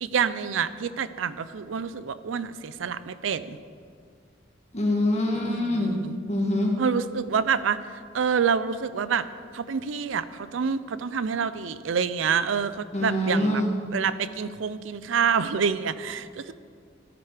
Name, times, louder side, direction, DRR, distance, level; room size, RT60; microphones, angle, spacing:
voice 1, 0.0-3.6 5.3-6.1 6.8-9.2 9.5-13.6 13.9-16.5, right 6 dB, 85° right, 15 dB, 0.5 m, -27 dB
voice 2, 4.7-6.0 6.3-6.7 12.9-13.7, left 1 dB, 35° left, 0 dB, 1.8 m, -24 dB
13.0 x 9.0 x 4.9 m, 2.1 s
head